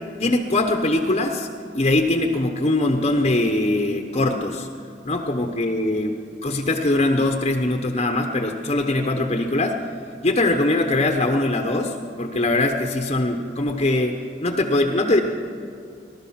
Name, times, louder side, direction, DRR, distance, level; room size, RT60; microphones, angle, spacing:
voice 1, 0.2-1.5 1.7-4.7 5.0-9.8 10.2-15.2, left 2 dB, 35° left, 4 dB, 0.9 m, -22 dB
20.0 x 12.5 x 5.8 m, 2.5 s
head